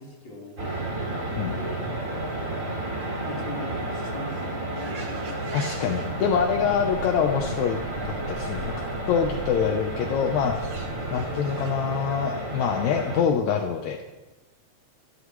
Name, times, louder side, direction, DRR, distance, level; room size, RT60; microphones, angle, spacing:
voice 1, 0.0-2.6 2.9-5.5 8.5-9.1 11.0-11.2, left 1 dB, 35° left, -5 dB, 4.8 m, -42 dB
sound 1, 0.6-13.2, right 2 dB, 25° right, 2.9 m, -32 dB
sound 2, 4.8-11.7, right 1 dB, 50° right, 2.5 m, -41 dB
voice 2, 5.5-10.6 11.1-14.0, left 7 dB, 75° left, 3 dB, 2.3 m, -25 dB
23.5 x 13.5 x 3.2 m, 1.1 s
omnidirectional pair, 3.4 m